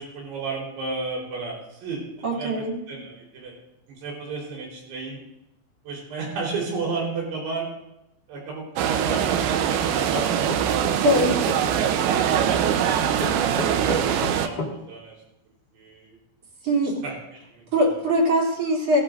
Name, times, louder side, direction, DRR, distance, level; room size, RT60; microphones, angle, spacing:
voice 1, 0.0-2.0 2.3-2.5 2.9-3.6 3.9-5.2 5.8-7.7 8.3-10.7 11.7-13.2 13.5-15.1 15.7-16.2 16.8-17.9, right 4 dB, 55° right, -2 dB, 6.0 m, -33 dB
voice 2, 2.2-2.7 11.0-11.5 16.6-17.0 17.7-19.0, equal, 35° right, -3 dB, 3.2 m, -22 dB
sound 1, 8.8-14.5, right 9 dB, 80° right, 2.7 m, -23 dB
sound 2, 10.1-11.6 13.2-14.7, left 3 dB, 75° left, 0.9 m, -32 dB
19.0 x 15.0 x 2.6 m, 0.87 s
omnidirectional pair, 5.9 m